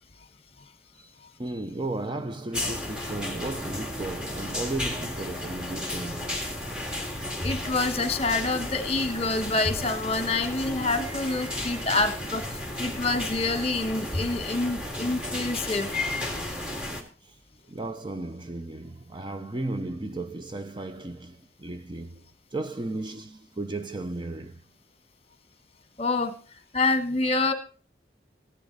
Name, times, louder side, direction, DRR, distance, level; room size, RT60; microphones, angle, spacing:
voice 1, 1.4-6.4 11.0-12.0 12.6-13.0 17.7-22.2 22.5-24.6, right 2 dB, 25° right, 0.6 m, -35 dB
sound 1, 2.5-17.0, left 1 dB, 5° right, 2.0 m, -33 dB
voice 2, 7.4-15.9 26.0-26.3 26.7-27.5, left 3 dB, 35° left, 1.3 m, -27 dB
15.5 x 10.5 x 4.0 m
head